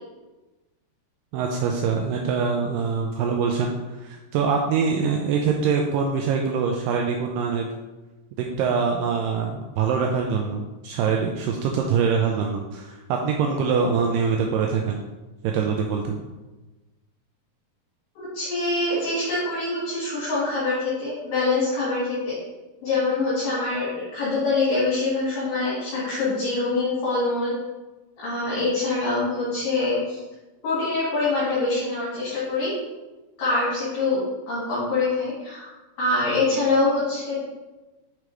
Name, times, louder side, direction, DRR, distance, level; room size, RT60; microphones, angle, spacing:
voice 1, 1.3-3.7 4.0-7.7 8.4-15.0 15.5-16.2, right 5 dB, 85° right, 1 dB, 1.9 m, -24 dB
voice 2, 18.2-22.3 22.8-27.5 28.2-30.2 30.6-32.7 33.4-34.2 34.5-35.7 36.0-37.4, left 3 dB, 65° left, -9 dB, 3.1 m, -24 dB
6.7 x 4.8 x 3.1 m, 1.1 s
omnidirectional pair, 4.4 m